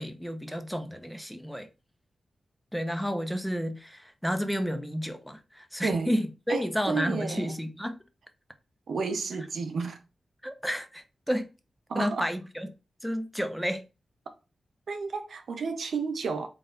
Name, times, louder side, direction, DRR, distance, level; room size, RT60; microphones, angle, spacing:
voice 1, 0.0-1.7 2.7-8.0 10.4-11.5 11.9-12.7 13.0-13.8, equal, ahead, 0.8 m, -31 dB
voice 2, 6.5-7.5 8.9-10.0 11.9-12.2 14.9-16.5, right 5 dB, 75° right, 0.6 m, -31 dB
3.9 x 2.5 x 3.9 m
cardioid pair, 50°, 0 cm